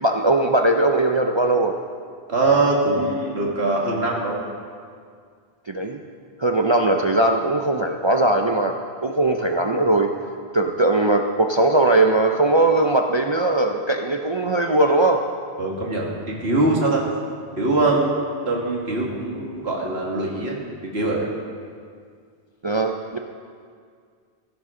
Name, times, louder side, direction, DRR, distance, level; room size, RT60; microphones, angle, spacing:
voice 1, 0.0-1.8 5.7-6.0 6.4-8.7 9.0-10.1 10.5-15.2 22.6-23.2, right 2 dB, 35° right, 3 dB, 0.5 m, -19 dB
voice 2, 2.3-4.4 15.6-17.0 17.6-18.1 18.5-20.6 20.9-21.3, right 2 dB, 85° right, -2 dB, 2.3 m, -22 dB
16.0 x 12.5 x 3.8 m, 2.1 s
omnidirectional pair, 1.0 m